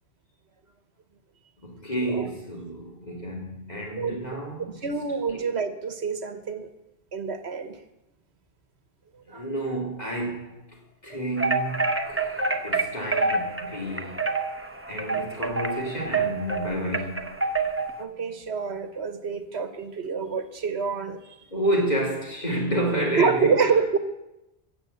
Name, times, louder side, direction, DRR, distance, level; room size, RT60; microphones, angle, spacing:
voice 1, 1.6-5.4 9.3-10.6 11.0-14.3 14.9-17.3 21.5-23.7, right 1 dB, 40° left, 2.8 m, -30 dB
voice 2, 4.6-6.7 7.1-7.8 9.3-9.5 18.0-21.4 23.2-24.0, right 5 dB, 75° right, 1.4 m, -27 dB
sound 1, 11.4-18.0, right 3 dB, 15° right, 0.8 m, -27 dB
16.0 x 7.4 x 7.9 m
omnidirectional pair, 1.1 m